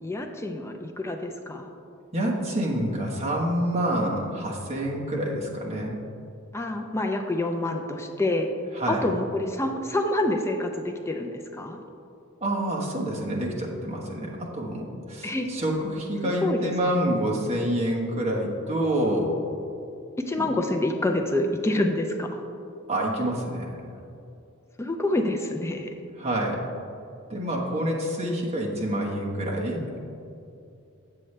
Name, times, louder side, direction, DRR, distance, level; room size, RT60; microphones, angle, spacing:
voice 1, 0.0-1.7 6.5-8.5 8.9-11.8 15.2-15.5 16.2-17.0 20.2-22.4 24.8-25.9, left 1 dB, 15° left, 4 dB, 0.4 m, -27 dB
voice 2, 2.1-6.0 8.7-9.1 12.4-19.3 20.4-20.5 22.9-23.7 26.2-26.6 27.3-29.8, right 1 dB, 30° right, -2 dB, 1.2 m, -27 dB
7.7 x 7.7 x 3.2 m, 2.6 s
head